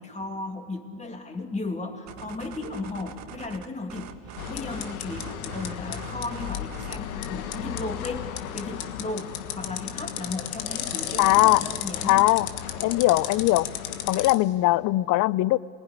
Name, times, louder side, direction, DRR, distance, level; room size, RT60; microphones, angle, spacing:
voice 1, 0.0-12.3, left 3 dB, 15° left, 2.7 m, -35 dB
sound 1, 2.1-7.1, right 9 dB, 40° right, 1.4 m, -43 dB
sound 2, 4.4-14.3, left 9 dB, 90° left, 1.5 m, -34 dB
voice 2, 11.2-11.6 12.0-12.5 12.8-13.7 14.1-15.6, left 18 dB, 45° left, 0.6 m, -20 dB
27.0 x 19.5 x 9.8 m
supercardioid pair, 105°, 41 cm